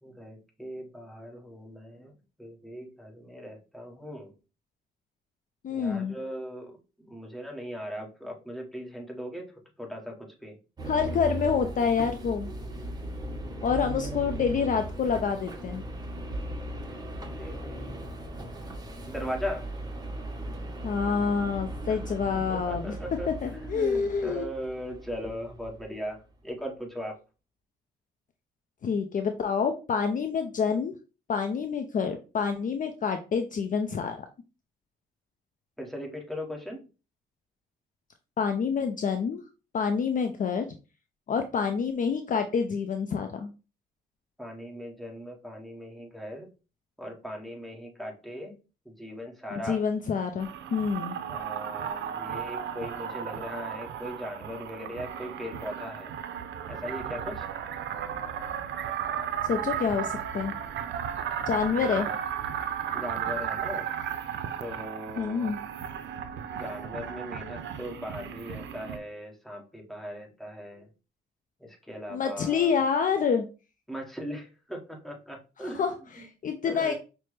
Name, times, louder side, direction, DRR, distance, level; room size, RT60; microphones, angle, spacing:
voice 1, 0.0-2.1 2.4-4.3 5.7-6.8 7.1-9.5 9.8-10.6 14.0-14.2 17.3-18.3 19.1-19.7 22.3-27.2 35.8-36.8 44.4-46.5 47.0-48.6 48.8-49.8 51.3-56.1 56.7-57.5 61.8-62.2 62.9-63.9 64.6-65.5 66.5-70.8 71.6-72.8 73.9-75.8 76.6-76.9, equal, ahead, 0 dB, 1.3 m, -39 dB
voice 2, 5.6-6.2 10.8-12.5 13.6-15.8 20.8-23.0 23.3-24.4 28.8-31.0 31.3-34.3 38.4-39.4 39.7-40.7 41.3-43.5 49.5-51.2 59.4-60.5 61.5-62.1 65.2-65.6 72.1-73.5 75.6-76.9, left 6 dB, 40° left, 6 dB, 0.5 m, -27 dB
sound 1, 10.8-25.9, right 1 dB, 20° right, 0.9 m, -37 dB
sound 2, 50.4-69.0, right 9 dB, 65° right, 0.5 m, -35 dB
5.6 x 2.1 x 3.2 m, 0.32 s
cardioid pair, 90°, 20 cm